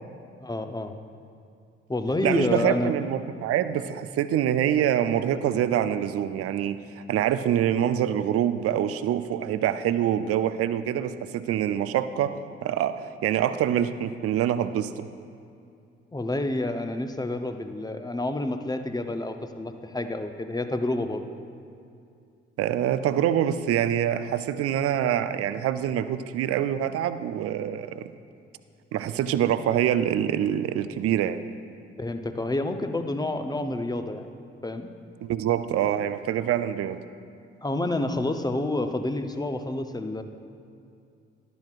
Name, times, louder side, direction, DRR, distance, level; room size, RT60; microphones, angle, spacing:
voice 1, 0.4-0.9 1.9-2.9 16.1-21.2 32.0-34.3 34.6-34.9 37.6-40.2, left 2 dB, 15° left, 7 dB, 0.8 m, -29 dB
voice 2, 2.2-12.3 12.6-15.1 22.6-28.0 28.9-31.4 35.2-37.0, right 10 dB, 50° right, 12 dB, 0.5 m, -25 dB
12.0 x 12.0 x 2.5 m, 2.5 s
figure-of-eight pair, 40°, 30 cm